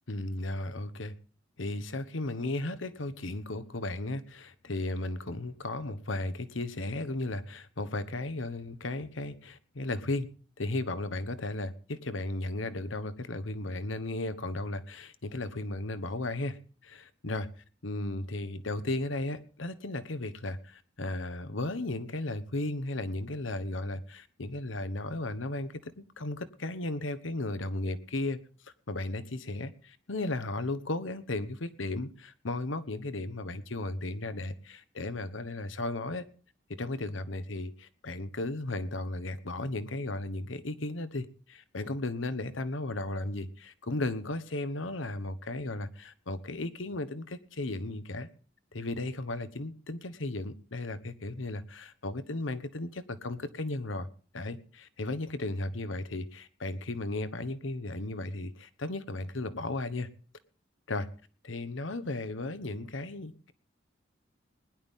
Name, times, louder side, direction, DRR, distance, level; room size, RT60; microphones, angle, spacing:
voice 1, 0.1-1.1 1.6-17.5 17.8-36.2 36.7-48.3 48.7-54.1 54.3-60.1 60.9-61.1 61.4-63.5, left 2 dB, 80° left, 1.1 m, -35 dB
20.5 x 11.0 x 3.7 m
head